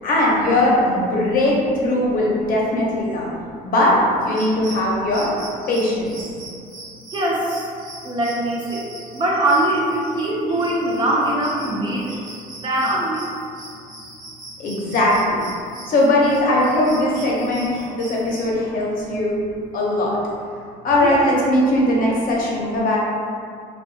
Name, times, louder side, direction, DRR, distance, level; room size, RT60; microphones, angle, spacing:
voice 1, 0.0-3.3 3.6-4.0 4.3-5.3 5.7-6.1 14.6-15.4 15.9-19.4 19.7-20.2 20.8-23.0, left 1 dB, 55° left, -4 dB, 0.7 m, -19 dB
sound 1, 4.2-18.5, right 2 dB, 50° right, 1.0 m, -41 dB
voice 2, 7.1-7.7 8.0-12.2 12.5-13.3 21.0-21.2, right 1 dB, 25° right, -4 dB, 0.5 m, -22 dB
2.6 x 2.2 x 2.6 m, 2.3 s
cardioid pair, 110°, 17 cm